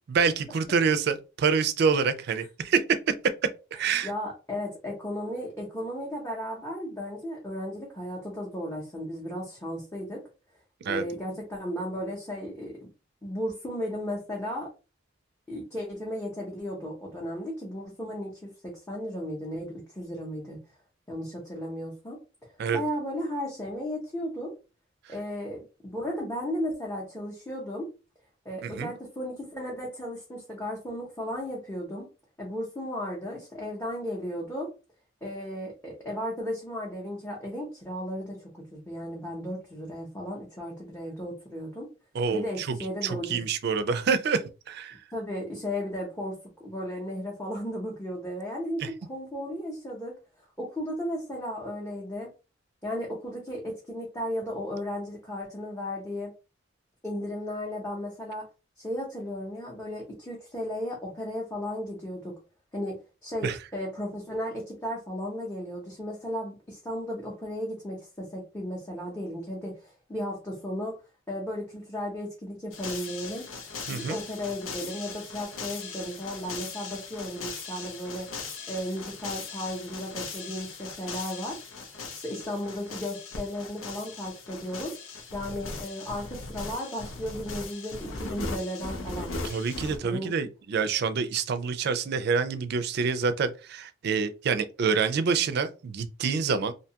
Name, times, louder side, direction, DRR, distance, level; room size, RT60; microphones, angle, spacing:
voice 1, 0.1-2.8 3.7-4.1 10.8-11.0 22.6-22.8 28.6-28.9 42.1-42.8 43.0-44.4 44.7-44.9 48.8-48.9 63.4-63.6 73.9-74.2 89.4-96.7, right 5 dB, 55° right, 0.4 m, -27 dB
voice 2, 3.8-10.2 10.9-12.9 13.2-14.7 15.5-20.6 21.1-22.2 22.7-24.5 25.1-27.9 28.4-32.1 32.4-34.7 35.2-41.9 42.3-43.4 45.1-50.2 50.6-52.3 52.8-56.3 57.0-58.5 58.8-62.4 62.7-70.9 71.3-73.4 73.9-78.3 78.7-81.6 82.2-84.9 85.3-89.4 90.0-90.3, equal, 10° left, 0.6 m, -35 dB
sound 1, 72.7-90.0, left 4 dB, 85° left, 0.7 m, -39 dB
2.6 x 2.2 x 2.8 m
head